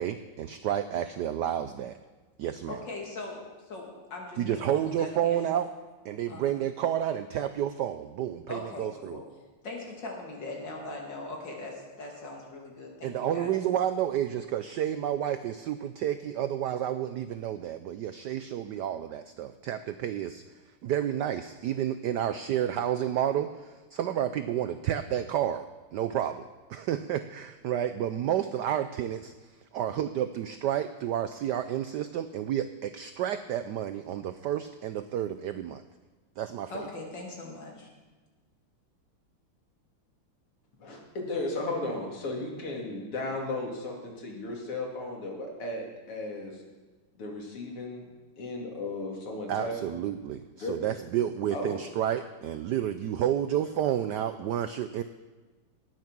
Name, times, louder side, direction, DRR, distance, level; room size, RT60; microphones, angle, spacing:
voice 1, 0.0-2.0 2.4-2.8 4.4-5.7 6.0-9.2 13.0-20.4 20.8-25.7 25.9-29.3 29.7-35.8 36.4-36.9 49.5-55.0, right 10 dB, 85° right, 11 dB, 0.9 m, -30 dB
voice 2, 2.7-5.7 6.3-6.6 8.5-9.2 9.6-13.5 36.7-37.9, left 2 dB, 55° left, -1 dB, 3.2 m, -40 dB
voice 3, 40.8-46.6 47.2-48.1 48.4-49.9 50.6-50.7 51.5-51.8, left 2 dB, 85° left, 0 dB, 3.3 m, -35 dB
19.0 x 7.4 x 6.1 m, 1.3 s
omnidirectional pair, 2.4 m